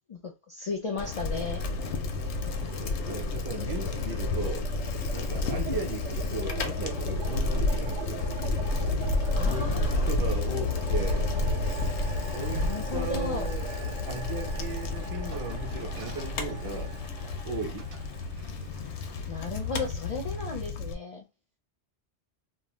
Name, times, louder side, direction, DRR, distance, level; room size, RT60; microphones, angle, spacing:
voice 1, 0.1-1.6 5.4-5.8 9.3-10.1 12.5-13.5 19.3-21.2, left 4 dB, 45° left, 0.4 m, -35 dB
Bicycle, 1.0-20.9, left 3 dB, 85° left, 0.9 m, -30 dB
sound 1, 1.5-2.2 2.5-20.5, right 7 dB, 90° right, 0.9 m, -43 dB
voice 2, 2.7-4.7 5.1-8.0 9.4-11.2 12.2-16.9 17.4-17.9, right 4 dB, 25° right, 0.6 m, -37 dB
Glass, 15.3-17.1 17.8-18.1 18.4-18.6, right 4 dB, 60° right, 0.9 m, -52 dB
2.6 x 2.1 x 3.1 m
omnidirectional pair, 1.1 m